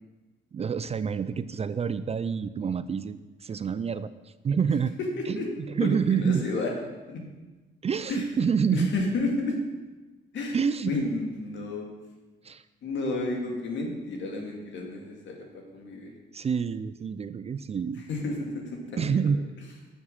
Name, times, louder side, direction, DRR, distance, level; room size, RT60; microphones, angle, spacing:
voice 1, 0.5-4.9 5.3-6.4 7.8-8.9 10.5-10.9 12.4-12.6 16.3-18.0 19.0-19.4, right 6 dB, 30° right, 14 dB, 0.4 m, -28 dB
voice 2, 5.0-5.5 5.8-6.7 7.1-7.3 8.1-8.2 8.7-9.6 10.3-10.6 10.8-11.9 12.8-15.4 15.7-16.1 18.1-19.3, left 2 dB, 70° left, 1 dB, 2.1 m, -31 dB
7.3 x 7.1 x 6.5 m, 1.2 s
cardioid pair, 90°, 20 cm